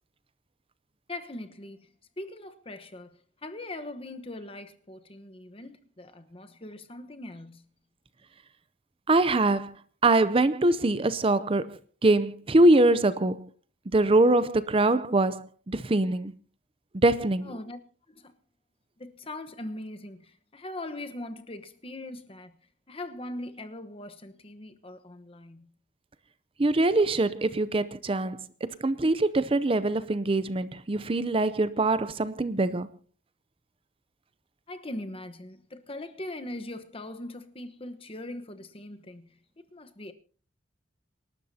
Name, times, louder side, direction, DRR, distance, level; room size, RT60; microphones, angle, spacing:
voice 1, 1.1-7.6 17.4-17.8 18.1-18.3 19.0-22.5 22.9-25.7 34.7-39.3 39.6-40.1, left 1 dB, 30° left, 1.1 m, -41 dB
voice 2, 9.1-9.8 10.0-13.5 13.9-16.3 17.0-17.5 26.6-28.4 28.8-32.9, right 2 dB, 30° right, 0.6 m, -23 dB
27.5 x 12.5 x 2.8 m
head